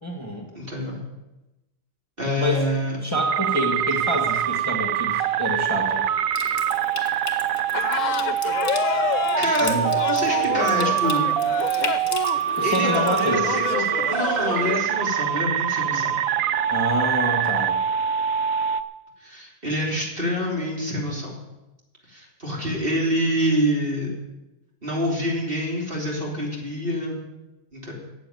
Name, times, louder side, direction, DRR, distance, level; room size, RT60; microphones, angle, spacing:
voice 1, 0.0-0.5 2.4-2.6 3.0-6.1 9.6-9.9 10.5-10.9 12.6-13.6 16.7-17.8, equal, 20° left, 1 dB, 2.0 m, -27 dB
voice 2, 0.5-1.0 2.2-3.0 9.4-9.7 10.1-11.3 11.7-12.0 12.6-16.2 19.2-21.3 22.1-24.1 24.8-27.2 27.7-27.9, equal, 40° right, -2 dB, 3.7 m, -26 dB
sound 1, 3.1-18.8, right 10 dB, 85° right, 1.1 m, -24 dB
Water tap faucet / Sink (filling or washing) / Trickle dribble, 6.3-13.3, left 4 dB, 50° left, 2.1 m, -37 dB
sound 2, 7.7-14.8, left 10 dB, 75° left, 1.0 m, -29 dB
14.0 x 8.2 x 9.3 m, 1.0 s
omnidirectional pair, 1.4 m